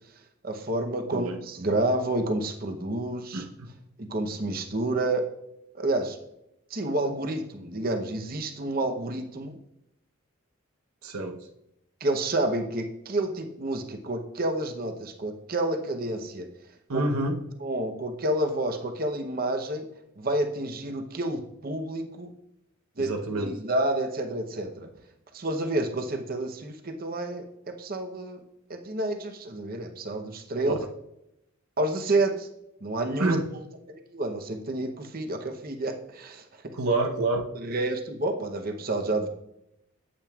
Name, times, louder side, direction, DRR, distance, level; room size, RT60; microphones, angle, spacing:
voice 1, 0.4-3.4 4.0-5.2 5.7-6.2 6.7-9.6 12.0-16.5 16.9-17.0 17.6-19.9 20.2-22.3 23.0-24.9 25.3-27.5 27.8-28.4 28.7-30.8 31.8-32.5 32.8-33.6 33.9-36.4 37.5-39.3, right 1 dB, 40° right, 5 dB, 0.8 m, -29 dB
voice 2, 3.3-3.7 11.0-11.4 16.9-17.4 23.0-23.6 33.2-33.5 36.7-37.5, right 2 dB, 85° right, 4 dB, 0.8 m, -27 dB
8.8 x 8.7 x 2.4 m, 0.83 s
head